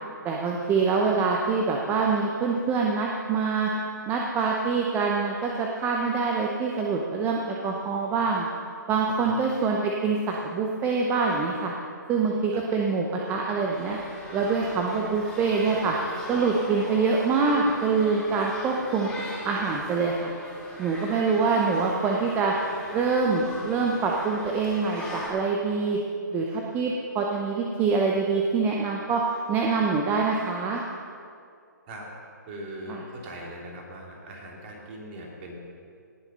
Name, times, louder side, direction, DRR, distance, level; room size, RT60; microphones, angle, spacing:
voice 1, 0.2-3.7 4.1-8.5 8.9-11.7 12.1-14.0 14.3-15.9 16.3-20.3 20.8-22.5 22.9-26.0 26.3-29.2 29.5-30.8 32.9-33.0, right 4 dB, 20° right, 0 dB, 0.9 m, -25 dB
sound 1, 13.7-25.3, left 1 dB, 5° left, 3.4 m, -40 dB
voice 2, 32.5-35.6, right 1 dB, 35° right, -1 dB, 2.9 m, -40 dB
18.0 x 7.3 x 5.5 m, 2.3 s
figure-of-eight pair, 135°, 10 cm